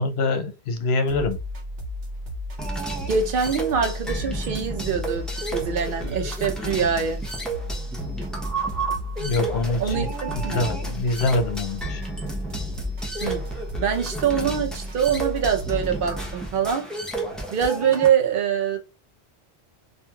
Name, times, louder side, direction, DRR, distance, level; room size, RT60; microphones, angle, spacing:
voice 1, 0.0-1.4 9.2-10.1 10.3-12.0, left 2 dB, 70° left, 0.9 m, -25 dB
sound 1, 1.1-16.3, left 1 dB, 85° right, 1.1 m, -34 dB
sound 2, 2.6-18.1, right 3 dB, ahead, 0.5 m, -32 dB
voice 2, 3.1-5.3 5.5-7.2 9.8-10.6 13.2-13.4 13.8-16.9 17.5-18.8, right 7 dB, 55° right, 0.8 m, -24 dB
3.0 x 2.5 x 2.3 m
omnidirectional pair, 1.1 m